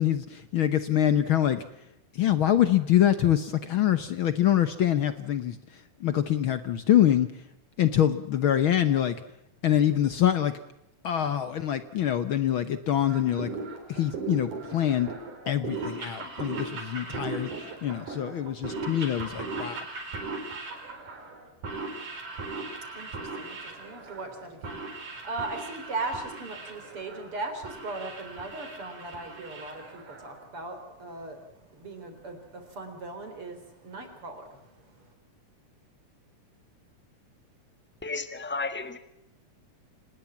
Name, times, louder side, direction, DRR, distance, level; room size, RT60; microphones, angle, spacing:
voice 1, 0.0-1.6 2.1-5.6 6.0-7.3 7.8-9.2 9.6-10.5 11.0-13.5 13.9-15.1 15.5-17.5 17.8-19.8, left 11 dB, 65° left, 12 dB, 1.2 m, -25 dB
sound 1, 13.0-30.4, right 3 dB, 75° right, 6.3 m, -38 dB
voice 2, 22.3-35.1, right 3 dB, 45° right, 6 dB, 4.6 m, -39 dB
voice 3, 38.0-39.0, left 3 dB, 10° left, 10 dB, 0.5 m, -33 dB
26.5 x 20.0 x 7.2 m, 0.81 s
omnidirectional pair, 3.6 m